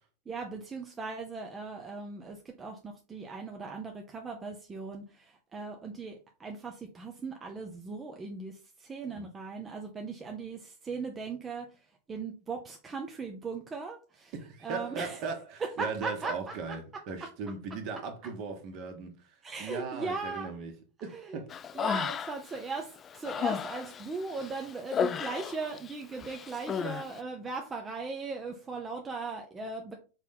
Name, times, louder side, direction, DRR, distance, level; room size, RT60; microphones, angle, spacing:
voice 1, 0.3-14.3 14.6-15.3 15.6-16.5 19.4-20.6 21.1-21.4 21.7-29.9, right 4 dB, 20° right, 0.8 m, -38 dB
voice 2, 14.3-20.7 21.0-21.5, right 4 dB, 40° right, 1.6 m, -38 dB
Human voice, 21.5-22.6 23.0-25.9 26.2-27.1, left 7 dB, 25° left, 0.4 m, -33 dB
5.7 x 4.3 x 3.9 m
figure-of-eight pair, 90°, 0 cm